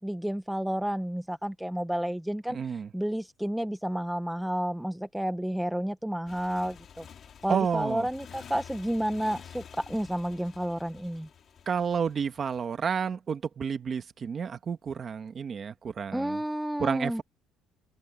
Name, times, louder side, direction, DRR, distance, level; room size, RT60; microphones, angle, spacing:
voice 1, 0.0-2.6 2.9-7.1 7.4-11.3 16.1-17.2, equal, ahead, 0.5 m, -31 dB
voice 2, 2.5-2.9 7.5-8.1 11.7-16.4 16.8-17.2, right 6 dB, 30° right, 1.3 m, -30 dB
Motorcycle, 6.3-12.6, left 8 dB, 35° left, 3.1 m, -50 dB
cardioid pair, 180°, 0 cm